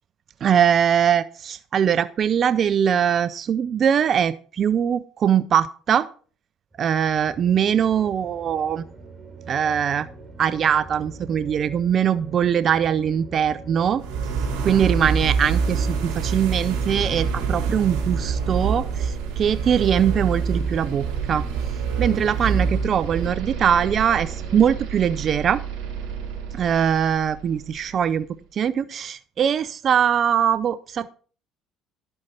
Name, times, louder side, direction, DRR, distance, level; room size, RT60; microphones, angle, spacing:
voice 1, 0.4-6.1 6.8-8.9 9.5-10.1 10.4-14.0 14.6-21.5 22.0-25.6 26.5-28.3 28.5-31.1, right 8 dB, 50° right, 15 dB, 0.5 m, -21 dB
sound 1, 6.7-24.8, right 2 dB, 25° right, 3.7 m, -41 dB
sound 2, 14.0-27.9, right 5 dB, 70° right, 4.2 m, -27 dB
11.0 x 7.9 x 4.3 m, 0.40 s
supercardioid pair, 85°, 0 cm